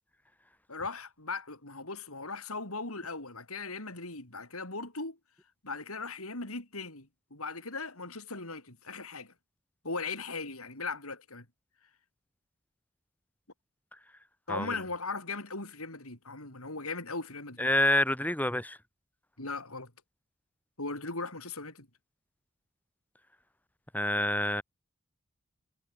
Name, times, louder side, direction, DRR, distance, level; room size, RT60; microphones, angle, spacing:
voice 1, 0.7-5.2 5.6-9.3 9.8-11.5 14.5-17.7 19.4-19.9 20.8-21.9, left 3 dB, 90° left, 7.5 m, -38 dB
voice 2, 17.6-18.8 23.9-24.6, left 1 dB, 10° left, 6.9 m, -27 dB
head